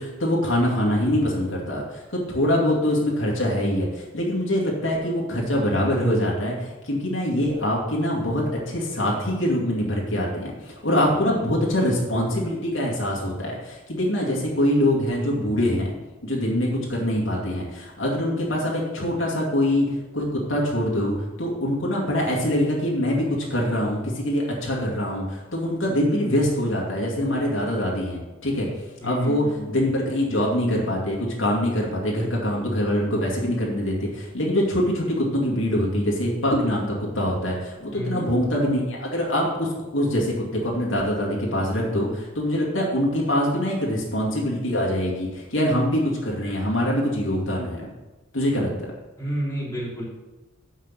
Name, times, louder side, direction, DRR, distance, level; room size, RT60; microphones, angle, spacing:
voice 1, 0.0-15.9 16.2-19.9 20.1-28.7 29.0-47.8 48.3-48.9, left 1 dB, 75° left, -3 dB, 2.3 m, -24 dB
voice 2, 29.0-29.7 37.9-38.3 49.2-50.0, equal, 15° left, -7 dB, 3.2 m, -30 dB
7.2 x 6.2 x 7.3 m, 1.1 s
head